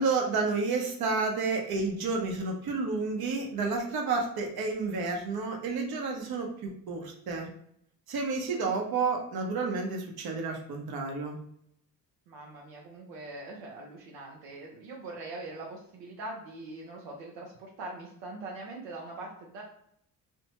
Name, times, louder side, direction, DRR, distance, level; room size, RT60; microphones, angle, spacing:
voice 1, 0.0-7.5 8.1-11.4, right 4 dB, 55° right, 1 dB, 0.9 m, -30 dB
voice 2, 12.3-19.6, right 2 dB, 80° right, -1 dB, 0.6 m, -42 dB
2.6 x 2.1 x 2.9 m, 0.71 s
supercardioid pair, 60°, 43 cm